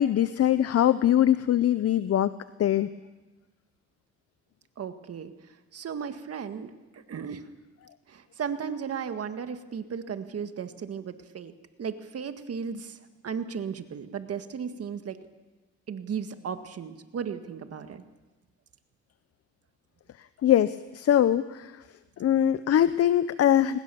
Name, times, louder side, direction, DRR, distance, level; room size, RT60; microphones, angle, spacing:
voice 1, 0.0-2.3 2.6-2.9 20.4-21.8 22.2-23.8, left 11 dB, 55° left, 14 dB, 0.7 m, -22 dB
voice 2, 4.8-5.3 5.7-7.4 8.1-11.5 11.8-13.0 13.2-15.2 15.9-18.0, right 7 dB, 50° right, 9 dB, 1.8 m, -35 dB
22.5 x 20.5 x 7.0 m, 1.2 s
cardioid pair, 90°, 30 cm